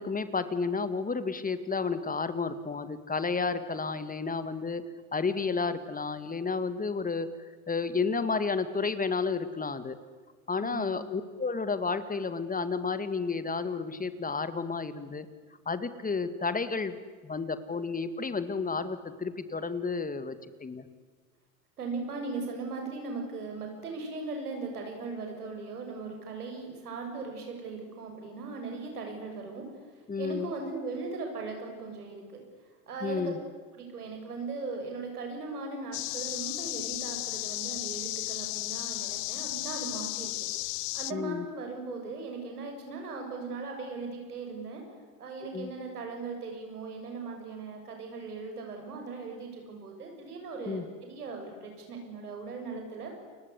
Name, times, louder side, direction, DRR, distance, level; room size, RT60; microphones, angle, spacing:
voice 1, 0.0-4.8 5.1-7.3 7.7-10.0 10.5-15.3 15.7-17.0 17.2-20.9 30.1-30.5 33.0-33.4 41.1-41.4 45.5-45.7 50.7-50.9, left 4 dB, 20° left, 12 dB, 2.0 m, -31 dB
voice 2, 10.6-10.9 21.8-29.7 30.2-32.4 32.9-33.3 33.7-40.3 40.9-44.8 45.2-53.1, right 3 dB, 85° right, 3 dB, 7.3 m, -38 dB
sound 1, 35.9-41.1, left 25 dB, 60° left, 0.7 m, -34 dB
29.5 x 23.5 x 8.3 m, 1.5 s
hypercardioid pair, 75°, 44 cm